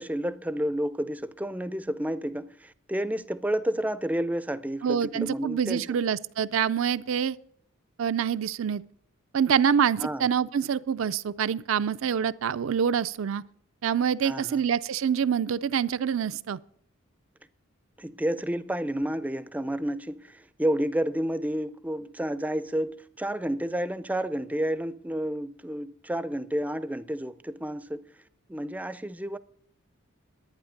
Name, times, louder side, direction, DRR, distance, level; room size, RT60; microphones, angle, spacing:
voice 1, 0.0-6.0 10.0-10.3 14.2-14.6 18.0-28.0 28.5-29.4, right 1 dB, 5° right, 0.4 m, -30 dB
voice 2, 4.8-7.4 8.0-8.8 9.3-13.4 13.8-16.6, right 7 dB, 70° right, 0.4 m, -26 dB
11.5 x 9.4 x 6.5 m
head